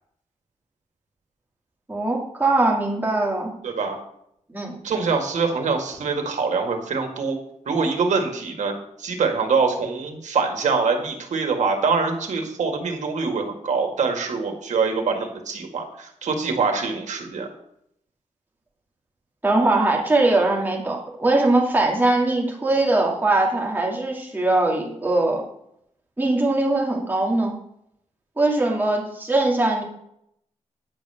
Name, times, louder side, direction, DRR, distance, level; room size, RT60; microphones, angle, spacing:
voice 1, 1.9-3.5 4.5-4.7 19.4-25.4 26.2-27.5 28.4-29.8, right 2 dB, 15° right, -2 dB, 2.4 m, -21 dB
voice 2, 3.6-4.0 4.8-7.4 7.7-8.7 9.0-17.5, right 4 dB, 80° right, 3 dB, 1.9 m, -24 dB
10.0 x 5.2 x 6.8 m, 0.74 s
wide cardioid pair, 135°, 12 cm